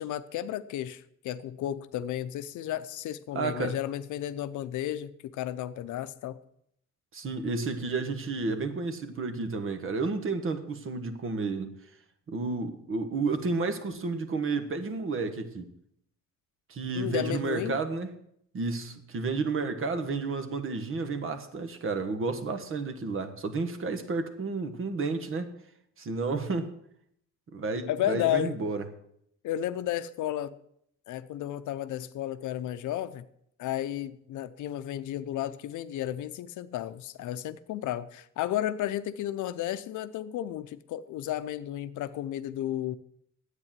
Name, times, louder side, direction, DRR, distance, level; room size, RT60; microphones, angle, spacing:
voice 1, 0.0-6.4 16.9-17.8 27.9-28.6 29.4-30.6 31.1-33.3 33.6-43.0, left 12 dB, 85° left, 0.7 m, -33 dB
voice 2, 3.3-3.8 7.1-11.7 12.3-15.7 16.7-18.1 18.5-25.5 26.0-26.7 27.5-28.8, right 3 dB, 45° right, 1.3 m, -31 dB
9.9 x 8.4 x 7.4 m
cardioid pair, 125°, 29 cm